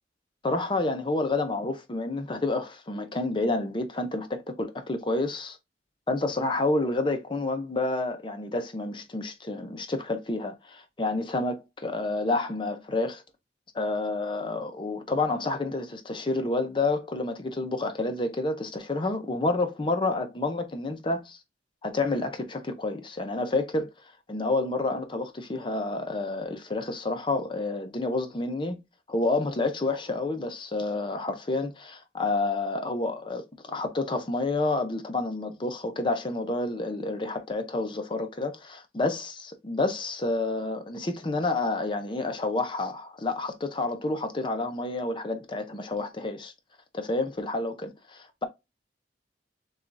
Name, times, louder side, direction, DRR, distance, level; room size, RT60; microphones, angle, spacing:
voice 1, 0.4-5.6 6.1-13.2 13.7-21.4 21.8-23.9 24.3-28.8 29.1-46.5 46.9-48.4, left 2 dB, 25° left, 0.6 m, -29 dB
6.9 x 2.4 x 2.5 m
head